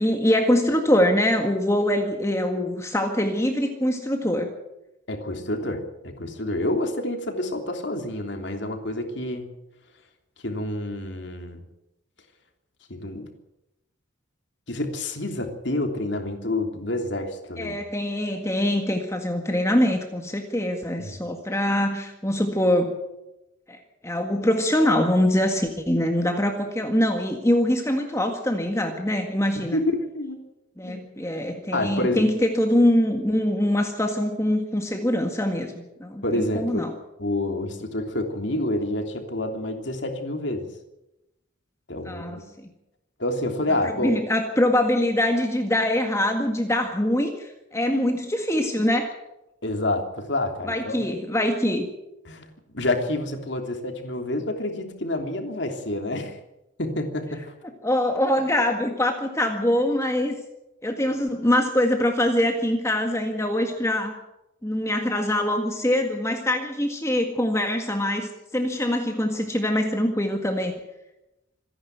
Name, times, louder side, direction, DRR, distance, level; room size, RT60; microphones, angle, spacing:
voice 1, 0.0-4.5 17.6-23.0 23.7-29.8 30.8-36.9 42.1-42.7 43.8-49.1 50.7-51.9 57.8-60.4 60.8-64.2 64.6-70.7, left 1 dB, 15° left, 4 dB, 1.8 m, -23 dB
voice 2, 5.1-9.5 10.4-11.6 12.9-13.3 14.7-17.8 21.0-21.2 29.6-29.8 30.1-30.4 30.8-31.2 31.7-32.3 36.2-36.8 37.2-40.7 41.9-42.4 43.2-44.2 49.6-51.1 52.2-56.4 56.8-57.5, left 1 dB, 60° left, 5 dB, 3.1 m, -28 dB
26.5 x 11.0 x 9.5 m, 0.93 s
head